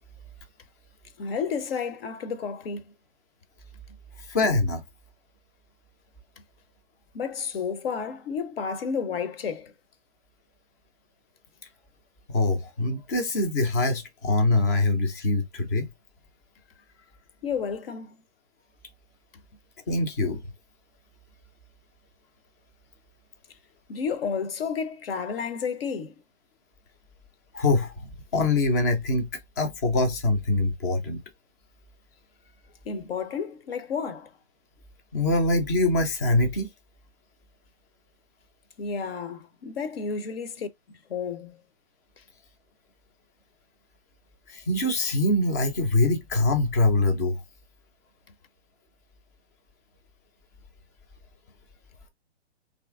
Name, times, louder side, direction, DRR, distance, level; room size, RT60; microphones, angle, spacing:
voice 1, 1.2-2.9 7.1-9.7 17.4-18.2 23.9-26.1 32.8-34.3 38.8-40.7 41.1-41.6, left 6 dB, 60° left, 0.6 m, -31 dB
voice 2, 4.3-4.8 12.3-15.9 19.9-20.4 27.5-29.3 29.6-31.2 35.1-36.7 44.5-47.4, left 2 dB, 15° left, 0.3 m, -24 dB
2.9 x 2.5 x 3.4 m
hypercardioid pair, 130°, 34 cm